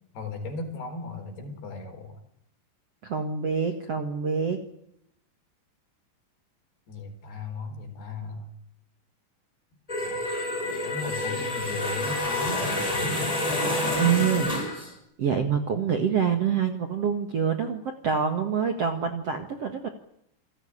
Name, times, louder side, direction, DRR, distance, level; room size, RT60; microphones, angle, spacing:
voice 1, 0.1-2.2 6.9-8.5 10.8-12.6, left 3 dB, 65° left, 5 dB, 6.2 m, -36 dB
voice 2, 3.0-4.6 14.0-14.5 15.2-19.9, right 7 dB, 50° right, 5 dB, 1.9 m, -26 dB
sound 1, 9.9-14.9, left 2 dB, 10° left, 5.8 m, -28 dB
28.5 x 16.0 x 9.8 m, 0.78 s
omnidirectional pair, 4.9 m